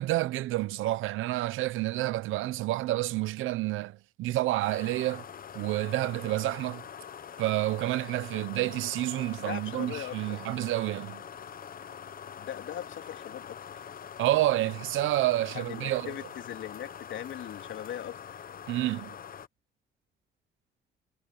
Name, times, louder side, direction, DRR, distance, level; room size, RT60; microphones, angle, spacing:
voice 1, 0.0-5.2 5.5-6.8 7.4-11.2 14.2-16.1 18.7-19.1, right 16 dB, 90° right, 0.9 m, -29 dB
sound 1, 4.6-19.5, left 8 dB, 45° left, 1.1 m, -44 dB
voice 2, 9.4-10.4 12.4-13.6 15.5-18.4, left 10 dB, 75° left, 3.4 m, -40 dB
cardioid pair, 90°, 20 cm